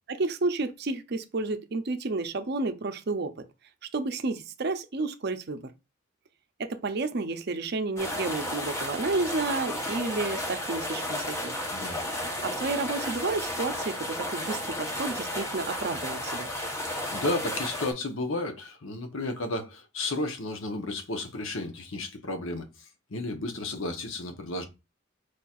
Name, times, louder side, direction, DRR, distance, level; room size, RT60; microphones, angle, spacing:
voice 1, 0.1-3.3 3.9-5.7 6.6-11.5 12.4-16.5, right 3 dB, 55° right, 0.6 m, -31 dB
sound 1, 8.0-17.9, left 1 dB, 15° left, 0.9 m, -33 dB
voice 2, 11.7-12.0 17.1-22.7 23.1-24.7, left 2 dB, 75° left, 0.9 m, -32 dB
4.8 x 4.3 x 2.4 m
head